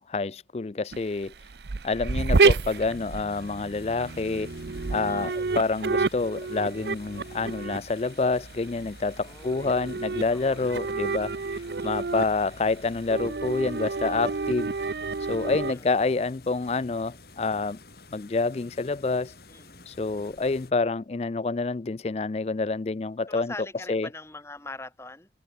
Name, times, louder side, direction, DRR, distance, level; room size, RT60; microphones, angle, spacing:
voice 1, 0.0-1.5 1.8-4.5 4.9-17.8 18.1-19.3 19.9-23.5 23.9-24.1, left 3 dB, 35° left, 0.4 m, -28 dB
sound 1, 0.9-15.7, right 4 dB, 70° right, 0.7 m, -29 dB
sound 2, 2.3-20.7, left 3 dB, 60° left, 7.5 m, -51 dB
voice 2, 5.0-5.5 9.2-9.9 10.3-10.8 11.8-12.2 15.7-15.9 19.5-20.0 23.3-25.3, left 2 dB, 15° left, 5.4 m, -43 dB
open air
head